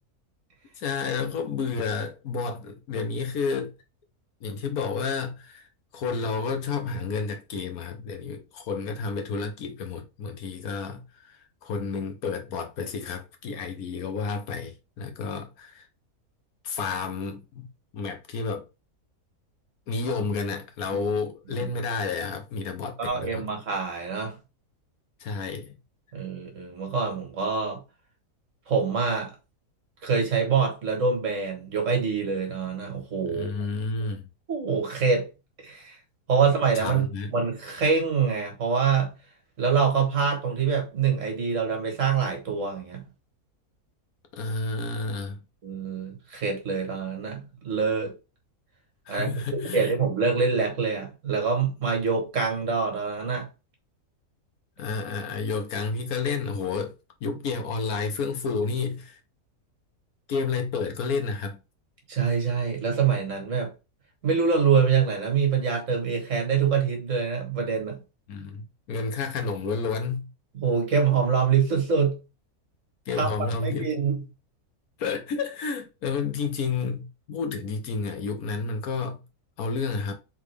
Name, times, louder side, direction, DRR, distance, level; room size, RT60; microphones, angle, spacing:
voice 1, 0.8-3.7 4.4-15.9 16.6-17.7 17.9-18.6 19.9-23.5 25.2-25.8 33.2-34.3 36.7-37.3 44.3-45.4 49.1-49.9 54.8-56.9 57.2-59.2 60.3-61.6 68.3-70.3 73.1-74.0 75.0-79.2 79.6-80.1, left 4 dB, 70° left, 1.3 m, -30 dB
voice 2, 23.0-24.4 26.1-27.8 28.7-29.3 30.0-33.5 34.5-35.3 35.6-36.0 36.3-39.1 39.6-43.0 45.6-48.1 49.1-53.5 62.1-63.7 64.2-68.0 70.5-72.2 73.2-73.3 73.6-74.2, right 5 dB, 55° right, 1.6 m, -25 dB
3.6 x 3.5 x 3.2 m
omnidirectional pair, 1.6 m